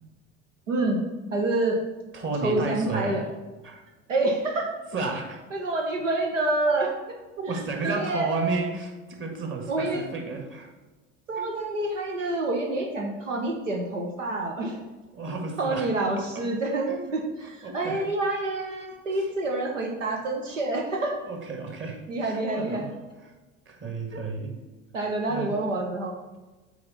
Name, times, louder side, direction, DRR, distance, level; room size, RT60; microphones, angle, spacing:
voice 1, 0.7-1.8 2.4-3.2 4.1-4.7 5.5-6.9 7.8-8.6 9.7-10.1 11.3-14.8 15.6-17.2 17.5-21.2 22.1-22.9 24.9-26.1, right 2 dB, 90° right, 1 dB, 1.0 m, -27 dB
voice 2, 2.1-3.3 3.6-3.8 4.9-5.4 7.4-10.7 11.4-11.5 15.1-15.9 16.2-16.5 16.9-17.0 17.4-18.0 19.1-19.3 20.5-22.9 23.2-23.3 23.7-24.6 25.3-25.5, right 3 dB, 30° right, 2 dB, 1.8 m, -33 dB
8.4 x 4.3 x 4.1 m, 1.2 s
hypercardioid pair, 70°, 37 cm